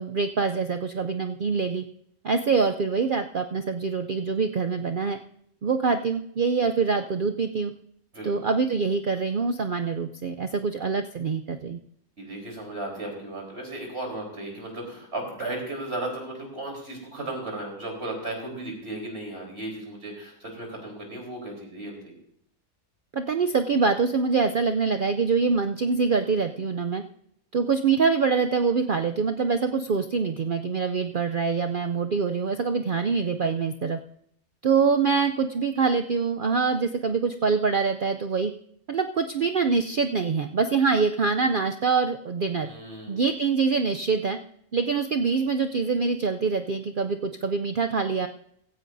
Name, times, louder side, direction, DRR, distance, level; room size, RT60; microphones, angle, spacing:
voice 1, 0.0-1.8 2.2-5.2 5.6-7.7 8.2-11.8 23.1-27.0 27.5-34.0 34.6-38.5 38.9-42.7 43.1-44.4 44.7-48.3, right 5 dB, 60° right, 7 dB, 0.5 m, -25 dB
voice 2, 8.1-8.5 12.2-22.2 42.6-43.2, right 2 dB, 45° right, 0 dB, 4.1 m, -35 dB
16.0 x 15.5 x 2.6 m, 0.68 s
omnidirectional pair, 1.5 m